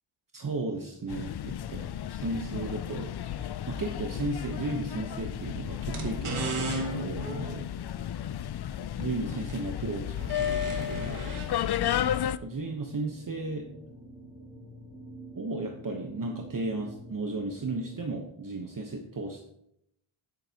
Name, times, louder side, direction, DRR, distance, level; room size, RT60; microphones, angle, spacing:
voice 1, 0.3-3.1 3.7-7.7 9.0-11.2 12.4-13.7 15.3-19.5, right 3 dB, 40° right, 2 dB, 1.1 m, -35 dB
sound 1, 1.1-12.4, left 10 dB, 55° left, 0.5 m, -33 dB
sound 2, 4.9-5.0 5.8-11.5, right 3 dB, 80° right, 1.7 m, -36 dB
sound 3, 10.5-18.0, right 1 dB, 90° left, 2.6 m, -48 dB
10.5 x 8.0 x 2.9 m, 0.76 s
cardioid pair, 75°, 49 cm